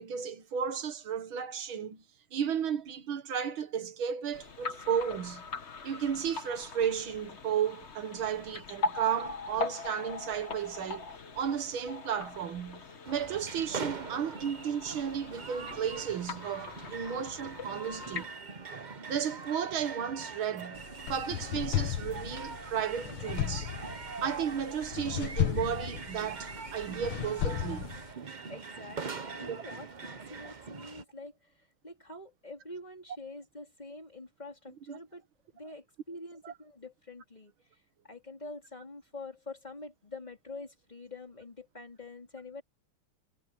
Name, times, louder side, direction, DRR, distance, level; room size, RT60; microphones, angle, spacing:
voice 1, 0.0-2.0 2.3-5.4 5.8-11.1 11.4-18.3 19.1-20.8 21.1-23.7 24.2-27.9 29.5-29.6 34.9-35.0 36.4-36.5, right 8 dB, 80° right, 2.2 m, -34 dB
sound 1, 4.3-18.3, left 3 dB, 35° left, 1.5 m, -41 dB
sound 2, 13.0-31.0, right 5 dB, 40° right, 0.6 m, -43 dB
sound 3, 20.8-28.1, left 12 dB, 85° left, 1.8 m, -35 dB
voice 2, 28.5-35.3 35.5-37.5 38.0-42.6, left 2 dB, 20° left, 3.7 m, -46 dB
omnidirectional pair, 2.2 m